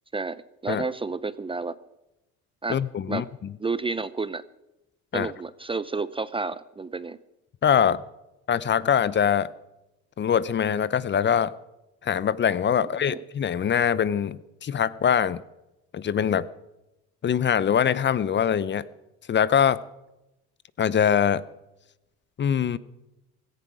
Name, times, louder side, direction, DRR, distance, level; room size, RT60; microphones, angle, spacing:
voice 1, 0.1-1.8 2.6-2.8 3.1-3.3 3.6-4.4 5.1-7.2 13.0-13.2, right 3 dB, 15° right, 17 dB, 0.5 m, -31 dB
voice 2, 2.7-3.2 5.1-5.3 7.6-8.0 8.5-9.5 10.2-11.5 12.0-15.4 15.9-16.5 17.2-18.8 19.3-19.8 20.8-21.4 22.4-22.8, left 8 dB, 35° left, 18 dB, 0.7 m, -23 dB
17.0 x 14.5 x 4.9 m, 0.93 s
supercardioid pair, 80°, 32 cm